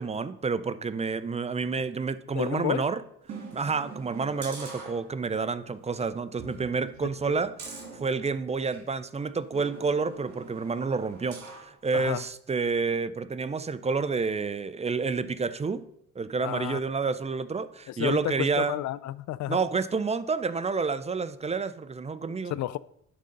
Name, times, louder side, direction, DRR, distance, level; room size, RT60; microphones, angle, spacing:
voice 1, 0.0-3.0 3.5-15.8 16.2-18.8 19.5-22.6, right 4 dB, 20° right, 13 dB, 0.5 m, -29 dB
voice 2, 2.3-2.8 7.2-7.4 11.9-12.2 16.4-16.8 17.9-19.6 22.5-22.8, left 14 dB, 70° left, 19 dB, 0.5 m, -31 dB
sound 1, 3.2-5.5 5.9-6.0 6.4-8.9 9.5-11.7 12.2-12.3, right 4 dB, 60° right, 2.9 m, -44 dB
11.0 x 3.8 x 5.2 m, 0.74 s
cardioid pair, 90°, 30 cm